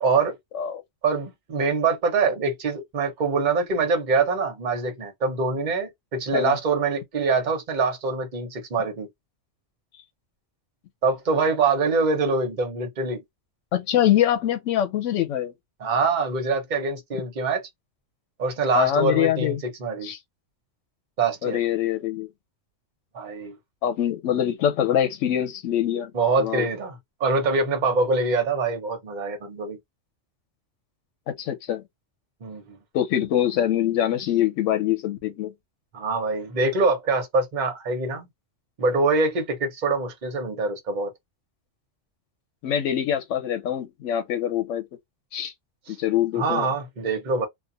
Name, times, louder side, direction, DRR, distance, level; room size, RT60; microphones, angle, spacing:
voice 1, 0.0-0.4 1.0-9.1 11.0-13.2 15.8-17.6 18.4-20.1 21.2-21.6 23.1-23.6 26.1-29.8 32.4-32.8 35.9-38.3 38.8-41.1 45.9-46.0 46.4-47.5, right 4 dB, 45° right, 0.9 m, -24 dB
voice 2, 13.7-15.5 18.7-19.6 20.0-20.2 21.4-22.3 23.8-26.1 26.4-26.7 31.3-31.8 32.9-35.5 42.6-44.8 45.3-45.5 46.0-46.7, left 11 dB, 85° left, 1.0 m, -24 dB
2.4 x 2.3 x 2.6 m
omnidirectional pair, 1.2 m